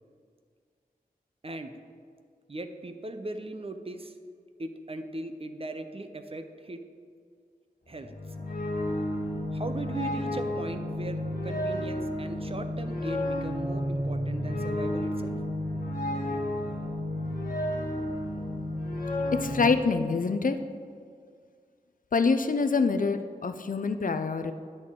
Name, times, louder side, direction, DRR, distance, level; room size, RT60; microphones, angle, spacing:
voice 1, 2.5-4.1 4.6-6.8 7.9-8.1 9.5-15.4, right 2 dB, 40° right, 7 dB, 0.6 m, -38 dB
sound 1, 7.9-19.7, left 1 dB, 80° left, 1.6 m, -31 dB
voice 2, 19.4-20.6 22.1-24.5, left 4 dB, 60° left, 9 dB, 0.5 m, -26 dB
10.0 x 6.3 x 3.7 m, 2.1 s
wide cardioid pair, 55°, 15 cm